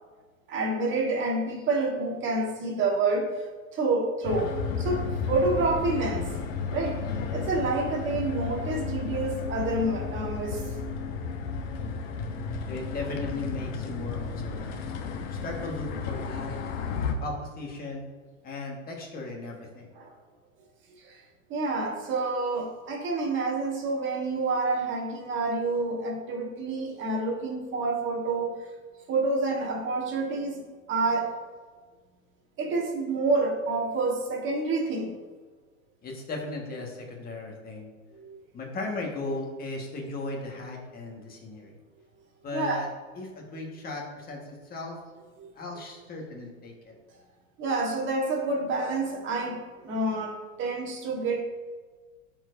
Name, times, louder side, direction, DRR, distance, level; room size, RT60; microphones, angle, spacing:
voice 1, 0.5-3.3 3.7-6.4 6.7-10.6 19.9-20.1 21.0-21.2 21.5-28.5 29.1-30.6 30.9-31.3 32.6-35.1 38.1-38.4 42.5-42.8 45.4-45.5 47.6-51.4, right 3 dB, 30° right, 0 dB, 1.4 m, -28 dB
sound 1, 4.2-17.1, left 5 dB, 50° left, 1.0 m, -33 dB
voice 2, 12.7-14.8 15.3-16.6 17.2-18.1 18.4-19.9 36.0-37.9 38.5-41.8 42.4-42.9 43.2-45.0 45.5-46.9, left 2 dB, 20° left, 0 dB, 1.6 m, -36 dB
12.5 x 4.6 x 2.7 m, 1.4 s
hypercardioid pair, 115°, 41 cm